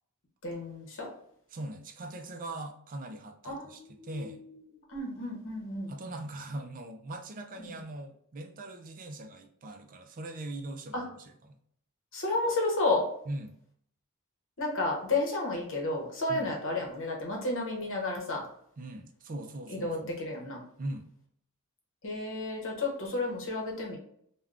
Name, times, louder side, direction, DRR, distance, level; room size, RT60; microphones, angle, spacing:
voice 1, 0.4-1.1 3.4-4.6 4.9-5.9 7.6-7.7 10.9-11.1 12.1-13.1 14.6-18.4 19.7-20.6 22.0-24.0, left 2 dB, 60° left, -1 dB, 0.9 m, -32 dB
voice 2, 1.5-4.4 5.9-11.6 13.3-13.6 16.3-16.5 18.8-20.1 20.8-21.1, right 1 dB, 40° right, 5 dB, 0.4 m, -41 dB
3.5 x 2.2 x 2.4 m, 0.69 s
head